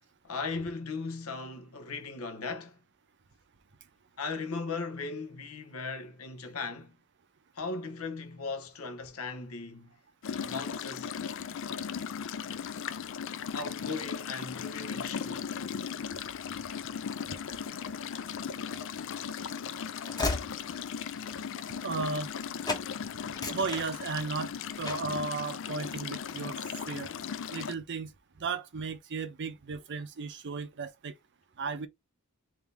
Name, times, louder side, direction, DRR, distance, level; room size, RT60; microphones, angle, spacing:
voice 1, 0.2-2.8 4.2-7.0 7.5-9.9 10.4-11.1 11.9-12.0 13.5-15.6, left 4 dB, 80° left, 0.9 m, -38 dB
sound 1, 10.2-27.7, left 7 dB, 60° left, 0.4 m, -37 dB
Train / Slam, 18.8-22.4 22.6-22.9 23.2-24.4 24.8-25.2, left 3 dB, 20° left, 0.9 m, -36 dB
voice 2, 21.5-22.3 23.2-26.6 26.8-27.1 27.5-31.1 31.6-31.9, right 4 dB, 55° right, 0.6 m, -35 dB
3.5 x 2.7 x 3.3 m
head